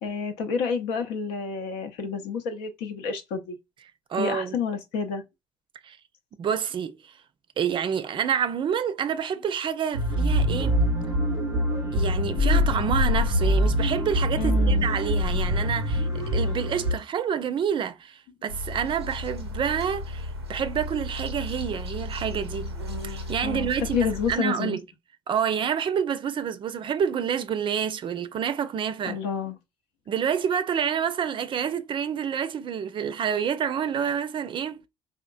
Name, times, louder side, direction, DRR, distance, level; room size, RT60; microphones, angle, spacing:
voice 1, 0.0-3.6 4.2-5.2 14.4-14.9 23.4-24.8 29.1-29.5, left 6 dB, 65° left, 0.7 m, -29 dB
voice 2, 4.1-4.6 5.8-6.0 6.4-7.1 7.6-10.8 11.9-22.7 23.0-24.8 25.3-29.2 30.1-34.8, right 8 dB, 40° right, 0.5 m, -28 dB
sound 1, 9.9-16.9, left 1 dB, 90° left, 1.4 m, -24 dB
sound 2, 18.5-24.4, left 1 dB, 85° right, 0.6 m, -35 dB
4.3 x 2.4 x 2.4 m
figure-of-eight pair, 50°, 13 cm